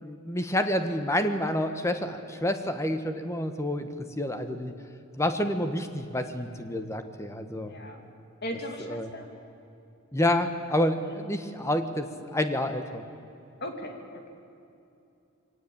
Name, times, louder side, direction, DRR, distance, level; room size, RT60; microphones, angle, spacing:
voice 1, 0.0-3.9 4.2-4.7 5.2-7.7 8.9-9.1 10.1-13.0, left 1 dB, 15° left, 8 dB, 1.3 m, -28 dB
voice 2, 7.6-8.0 8.4-9.3 11.0-11.3 13.6-14.3, equal, 50° left, 4 dB, 2.8 m, -38 dB
23.5 x 18.0 x 8.8 m, 2.7 s
head